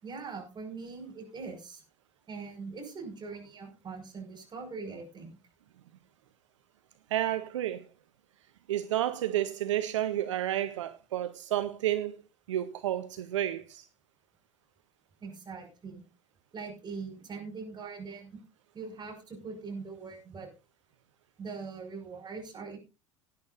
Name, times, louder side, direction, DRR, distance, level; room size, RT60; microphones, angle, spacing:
voice 1, 0.0-1.8 2.3-5.4 15.2-16.0 16.5-18.4 18.7-20.5 21.4-22.8, right 4 dB, 25° right, 5.8 m, -42 dB
voice 2, 7.1-7.8 8.7-12.2 12.5-13.8, right 12 dB, 70° right, 0.8 m, -31 dB
18.0 x 10.5 x 2.6 m
figure-of-eight pair, 75°, 16 cm